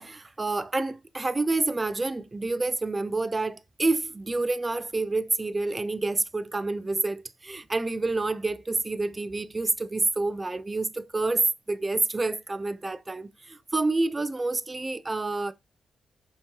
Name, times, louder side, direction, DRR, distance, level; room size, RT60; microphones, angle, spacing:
voice 1, 0.0-15.5, right 3 dB, 30° right, 0.5 m, -28 dB
5.0 x 3.1 x 2.8 m
supercardioid pair, 55°, 0 cm